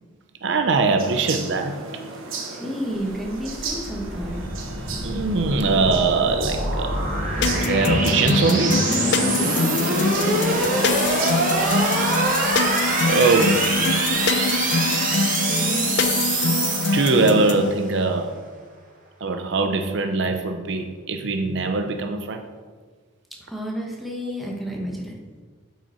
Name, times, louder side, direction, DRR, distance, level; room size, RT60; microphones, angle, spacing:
voice 1, 0.4-1.8 5.0-7.0 7.6-8.8 11.6-12.0 13.1-13.7 16.9-18.4 19.2-22.4, right 3 dB, 60° right, 6 dB, 0.5 m, -22 dB
sound 1, 1.0-11.3, right 4 dB, 80° right, 1.2 m, -35 dB
voice 2, 2.5-4.7 9.4-10.9 15.5-15.9 23.5-25.1, equal, ahead, -2 dB, 1.1 m, -31 dB
sound 2, 3.2-17.7, right 2 dB, 40° right, 1.4 m, -24 dB
sound 3, 7.4-17.7, left 4 dB, 55° left, 0.5 m, -24 dB
8.4 x 5.6 x 4.3 m, 1.5 s
head